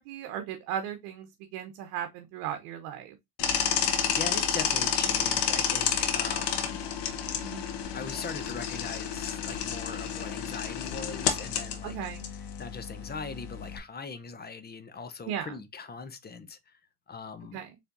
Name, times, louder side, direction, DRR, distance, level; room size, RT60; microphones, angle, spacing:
voice 1, 0.0-3.2 7.4-7.7 11.8-12.3 15.3-15.6 17.5-17.7, right 9 dB, 85° right, 0.9 m, -36 dB
sound 1, 3.4-13.8, left 8 dB, 60° left, 1.2 m, -30 dB
voice 2, 3.5-6.9 7.9-12.0 12.6-16.8 17.1-17.6, left 4 dB, 20° left, 0.6 m, -41 dB
4.4 x 3.4 x 2.5 m
supercardioid pair, 105°, 47 cm